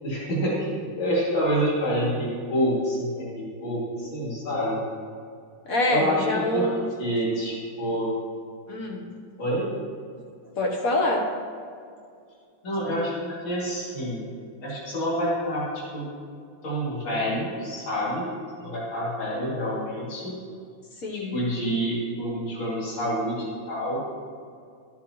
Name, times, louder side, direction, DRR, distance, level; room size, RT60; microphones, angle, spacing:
voice 1, 0.0-4.7 5.9-6.3 6.5-6.7 7.0-8.1 9.4-9.7 12.6-14.2 14.6-16.1 16.6-18.2 18.6-20.3 21.1-24.0, equal, 65° left, -7 dB, 3.4 m, -27 dB
voice 2, 5.7-6.9 8.7-9.1 10.6-11.2 21.0-21.4, left 1 dB, 50° left, 0 dB, 1.2 m, -25 dB
12.5 x 9.4 x 3.1 m, 2.3 s
omnidirectional pair, 2.4 m